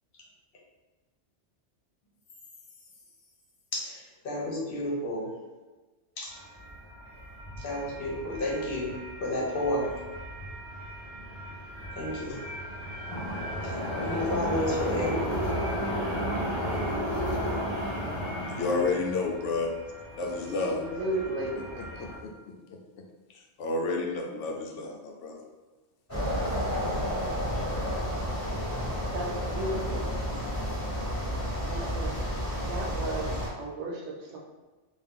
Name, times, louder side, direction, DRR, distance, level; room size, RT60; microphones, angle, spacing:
voice 1, 3.7-5.3 6.2-6.3 7.6-10.0 12.0-12.4 13.6-15.3, left 1 dB, 55° left, -3 dB, 0.9 m, -31 dB
sound 1, 6.3-22.2, equal, 35° left, 0.5 m, -34 dB
voice 2, 18.5-19.7 20.2-20.8 21.5-22.3 23.6-25.4, left 3 dB, 85° left, 1 dB, 0.9 m, -30 dB
voice 3, 20.6-21.5 29.1-30.1 31.7-32.2 32.6-33.3 33.6-34.4, right 2 dB, 75° right, -2 dB, 0.9 m, -34 dB
sound 2, 26.1-33.5, equal, 15° left, 0.9 m, -31 dB
2.6 x 2.3 x 3.5 m, 1.2 s
omnidirectional pair, 1.2 m